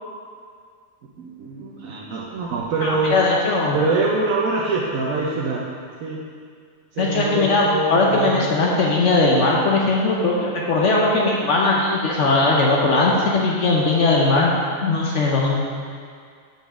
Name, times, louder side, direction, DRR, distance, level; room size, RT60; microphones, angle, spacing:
voice 1, 1.2-3.1 3.7-5.6 6.0-6.2 6.9-8.5, right 3 dB, 85° right, -4 dB, 1.2 m, -24 dB
voice 2, 2.8-3.8 7.0-14.5 14.8-15.5, left 3 dB, 65° left, -3 dB, 1.0 m, -19 dB
6.1 x 5.4 x 4.9 m, 2.1 s
omnidirectional pair, 1.4 m